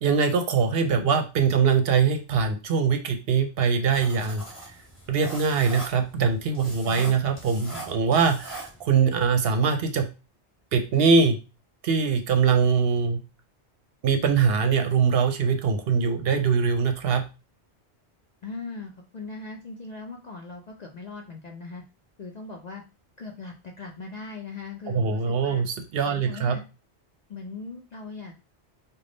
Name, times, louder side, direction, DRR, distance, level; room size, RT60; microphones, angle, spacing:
voice 1, 0.0-4.4 5.1-10.1 10.7-11.4 11.8-13.2 14.0-17.2 24.9-26.6, right 5 dB, 65° right, 6 dB, 0.8 m, -22 dB
sound 1, 3.9-9.0, right 2 dB, 15° left, 1.5 m, -41 dB
voice 2, 18.4-21.8 22.2-22.8 23.2-25.6 26.0-26.6 27.3-28.5, left 4 dB, 55° left, 2 dB, 0.5 m, -39 dB
3.4 x 2.2 x 3.8 m, 0.31 s
omnidirectional pair, 1.1 m